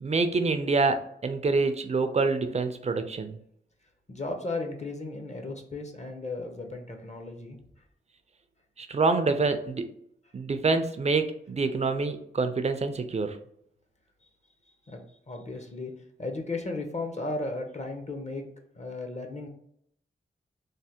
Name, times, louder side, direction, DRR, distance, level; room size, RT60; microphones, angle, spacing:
voice 1, 0.0-3.4 8.8-9.9 10.3-13.4, right 3 dB, 35° right, 8 dB, 0.4 m, -26 dB
voice 2, 4.1-7.6 14.9-15.0 15.3-15.9 16.2-18.5 18.7-19.5, left 2 dB, 35° left, 3 dB, 0.6 m, -35 dB
3.2 x 2.1 x 2.8 m, 0.70 s
cardioid pair, 65°, 20 cm